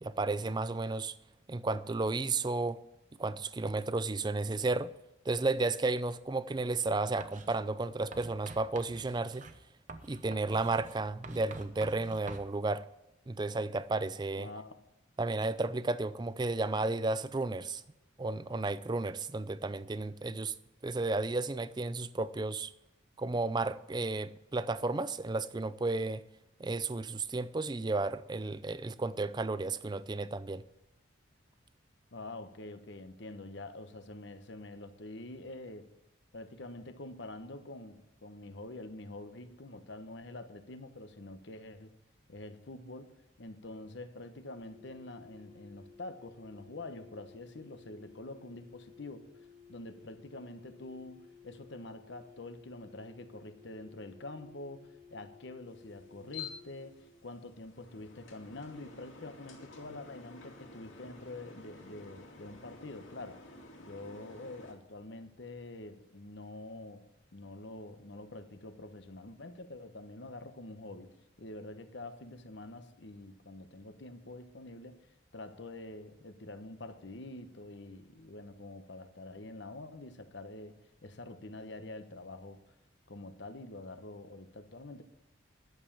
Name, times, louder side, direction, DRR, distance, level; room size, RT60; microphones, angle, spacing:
voice 1, 0.0-1.1 1.5-2.8 3.2-4.9 5.3-9.4 10.1-12.9 13.3-14.5 15.2-17.8 18.2-20.5 20.8-22.7 23.2-26.2 26.6-30.6, right 3 dB, 20° right, 0.4 m, -33 dB
Writing, 7.2-7.6 8.1-12.5, right 3 dB, 40° right, 0.8 m, -49 dB
voice 2, 14.4-14.8 32.1-35.9 36.3-42.0 42.3-63.4 63.8-67.0 67.3-75.0 75.3-82.6 83.1-85.0, left 2 dB, 60° left, 1.0 m, -46 dB
sound 1, 44.4-57.2, left 6 dB, 30° left, 3.3 m, -57 dB
sound 2, 55.7-64.7, left 4 dB, 75° left, 2.6 m, -51 dB
11.5 x 7.3 x 7.1 m
head